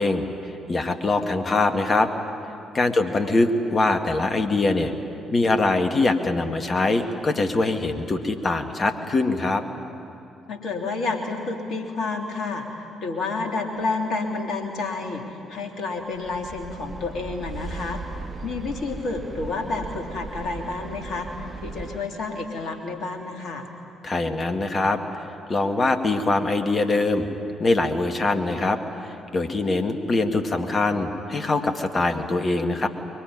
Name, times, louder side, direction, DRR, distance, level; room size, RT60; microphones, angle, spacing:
voice 1, 0.0-2.1 2.7-4.9 5.3-9.6 24.0-25.2 25.5-27.3 27.6-32.9, left 2 dB, 35° left, 6 dB, 2.1 m, -23 dB
voice 2, 10.5-18.0 18.4-21.3 21.6-23.7, left 3 dB, 55° left, 3 dB, 3.3 m, -30 dB
sound 1, 16.1-22.0, right 3 dB, 35° right, 1.6 m, -37 dB
24.0 x 23.0 x 9.8 m, 2.8 s
figure-of-eight pair, 45°, 0 cm